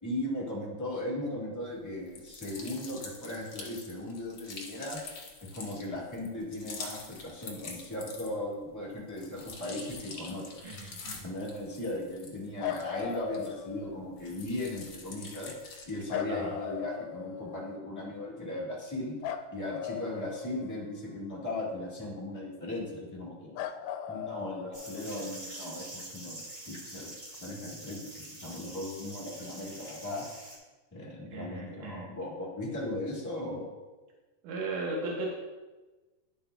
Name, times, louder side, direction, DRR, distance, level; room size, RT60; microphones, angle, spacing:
voice 1, 0.0-5.0 5.5-10.6 11.2-15.5 15.8-19.1 19.5-23.6 24.1-26.4 26.7-27.1 27.4-30.2 30.9-33.7, left 1 dB, 20° left, -5 dB, 0.4 m, -37 dB
sound 1, 2.1-8.5 8.9-13.8 14.2-16.0, left 4 dB, 50° left, 1.8 m, -45 dB
voice 2, 10.6-11.3 16.3-16.6 31.3-32.1 34.4-35.3, right 2 dB, 80° right, -3 dB, 2.9 m, -36 dB
sound 2, 12.6-14.1 16.1-17.7 19.2-21.1 23.6-25.3 27.3-27.4, left 10 dB, 85° left, 2.1 m, -38 dB
sound 3, 24.7-30.6, right 1 dB, 25° right, 2.0 m, -45 dB
11.0 x 7.3 x 2.3 m, 1.2 s
omnidirectional pair, 3.7 m